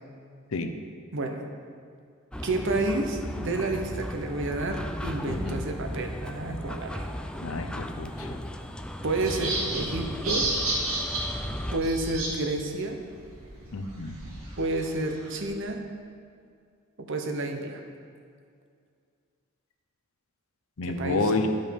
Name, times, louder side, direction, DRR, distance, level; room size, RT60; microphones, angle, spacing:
voice 1, 1.1-1.4 2.4-7.1 9.0-10.5 11.7-13.0 14.6-15.8 17.0-17.8 20.9-21.3, right 2 dB, 65° right, 4 dB, 0.9 m, -30 dB
sound 1, 2.3-11.8, equal, 5° left, 0.4 m, -36 dB
voice 2, 5.3-5.6 7.4-8.4 13.7-14.2 20.8-21.5, left 2 dB, 75° left, 7 dB, 0.7 m, -30 dB
sound 2, 9.3-12.3 12.7-12.8 13.1-15.5, right 2 dB, 80° right, 2.1 m, -32 dB
11.5 x 5.4 x 5.3 m, 2.2 s
head